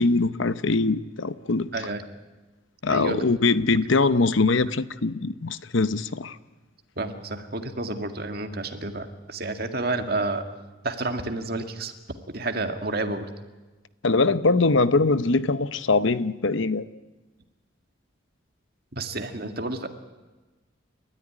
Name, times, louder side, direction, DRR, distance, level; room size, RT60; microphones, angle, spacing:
voice 1, 0.0-1.7 2.8-6.4 14.0-16.8, left 3 dB, 75° left, 14 dB, 0.9 m, -22 dB
voice 2, 2.9-3.3 7.0-10.5 10.8-11.9 12.3-13.3 19.0-19.9, right 2 dB, 50° right, 6 dB, 2.0 m, -30 dB
29.5 x 14.0 x 9.9 m, 1.2 s
head